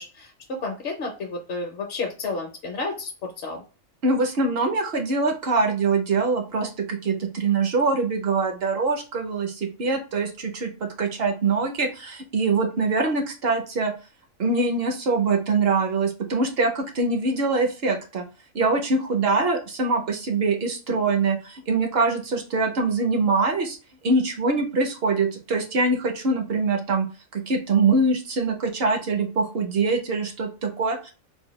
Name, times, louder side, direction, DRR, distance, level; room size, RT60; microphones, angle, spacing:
voice 1, 0.0-3.6, left 3 dB, 60° left, 1 dB, 0.8 m, -31 dB
voice 2, 4.0-13.9 14.4-18.2 18.5-23.8 24.0-27.1 27.3-31.1, right 3 dB, 55° right, 3 dB, 0.8 m, -23 dB
3.9 x 2.2 x 3.0 m, 0.34 s
omnidirectional pair, 1.3 m